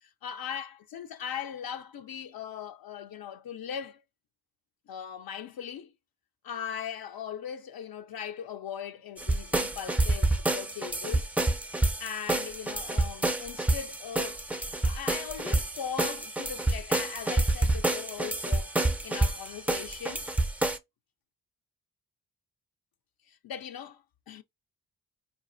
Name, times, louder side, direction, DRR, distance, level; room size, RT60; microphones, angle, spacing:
voice 1, 0.0-4.0 4.9-5.9 6.4-11.3 12.0-14.4 14.8-20.3 23.3-24.4, left 8 dB, 65° left, 0.5 m, -39 dB
sound 1, 9.2-20.8, right 2 dB, 5° right, 0.4 m, -28 dB
5.0 x 2.4 x 2.5 m
wide cardioid pair, 120°, 39 cm